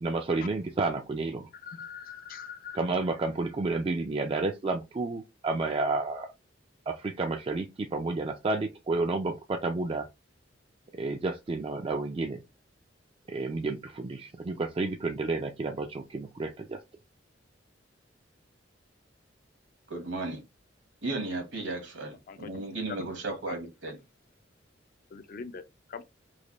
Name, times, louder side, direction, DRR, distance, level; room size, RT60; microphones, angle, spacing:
voice 1, 0.0-1.5 2.7-6.3 6.9-10.1 10.9-12.4 13.3-16.8, right 3 dB, 30° right, 0.3 m, -31 dB
voice 2, 1.6-2.8 22.3-22.5 23.5-23.6 25.1-25.6 25.9-26.0, left 6 dB, 50° left, 0.4 m, -42 dB
voice 3, 19.9-20.4 21.0-24.0, right 2 dB, 70° right, 1.2 m, -35 dB
3.2 x 2.1 x 3.9 m
head